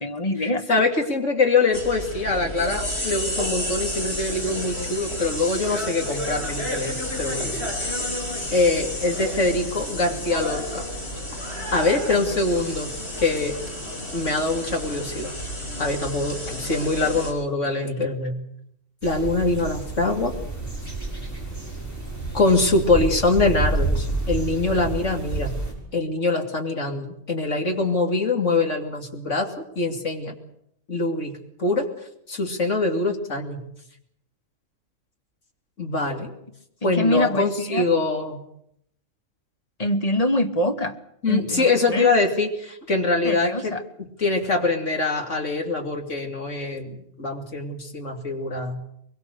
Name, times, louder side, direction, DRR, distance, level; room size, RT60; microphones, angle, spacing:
voice 1, 0.0-0.6 12.3-12.4 36.8-37.8 39.8-41.0 41.3-42.1 43.2-43.8, left 1 dB, 30° left, 8 dB, 1.4 m, -24 dB
voice 2, 0.7-7.7 8.5-10.8 11.7-12.9 13.2-13.6 14.1-15.3 15.8-18.4 19.0-20.3 22.3-25.5 25.9-30.3 30.9-31.3 31.6-31.9 32.3-33.6 35.8-36.3 36.8-38.4 41.2-43.8 44.2-48.8, left 3 dB, 70° left, 3 dB, 3.0 m, -23 dB
sound 1, 1.7-17.3, left 1 dB, 55° left, 4.8 m, -31 dB
sound 2, 19.0-25.7, right 3 dB, 10° left, 6.4 m, -29 dB
23.0 x 22.0 x 6.7 m, 0.73 s
omnidirectional pair, 1.3 m